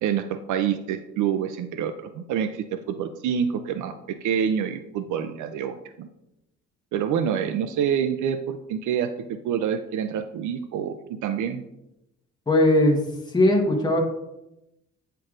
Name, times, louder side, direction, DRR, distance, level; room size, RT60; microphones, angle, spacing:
voice 1, 0.0-6.1 6.9-11.6, right 8 dB, 75° right, 9 dB, 0.5 m, -27 dB
voice 2, 12.5-14.0, left 1 dB, 15° left, 0 dB, 1.1 m, -20 dB
9.1 x 4.5 x 2.4 m, 0.89 s
cardioid pair, 90°, 30 cm